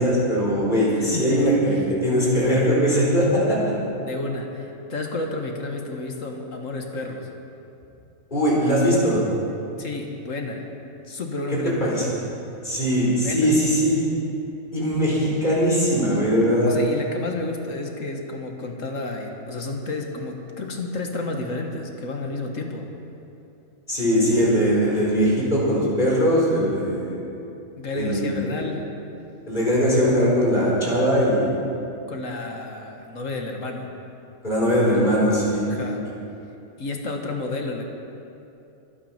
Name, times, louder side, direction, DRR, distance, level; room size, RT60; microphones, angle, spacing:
voice 1, 0.0-3.7 8.3-9.2 11.8-12.0 12.6-14.1 14.7-16.8 23.9-27.1 27.9-28.5 29.5-31.6 34.4-35.6, equal, 35° left, -6 dB, 4.6 m, -20 dB
voice 2, 1.0-1.8 4.0-7.3 9.8-10.6 11.1-11.9 13.2-13.5 16.7-22.9 27.8-28.9 32.1-33.9 35.7-36.0 36.8-37.9, left 2 dB, 65° left, 2 dB, 1.9 m, -31 dB
24.0 x 9.3 x 5.8 m, 2.7 s
omnidirectional pair, 1.5 m